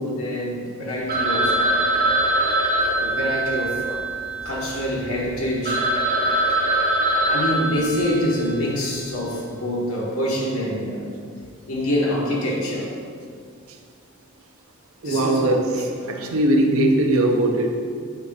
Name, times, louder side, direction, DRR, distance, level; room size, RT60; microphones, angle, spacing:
voice 1, 0.0-1.8 3.0-4.0 4.4-6.0 7.0-11.1 11.7-12.9 15.0-15.8 16.6-16.9, equal, 85° left, -3 dB, 1.4 m, -26 dB
Telephone, 1.1-4.9 5.3-5.4 5.6-8.5, right 1 dB, 40° right, 1.0 m, -22 dB
voice 2, 15.0-15.6 16.0-17.8, right 1 dB, 75° right, 3 dB, 0.7 m, -19 dB
7.7 x 2.8 x 5.3 m, 2.3 s
head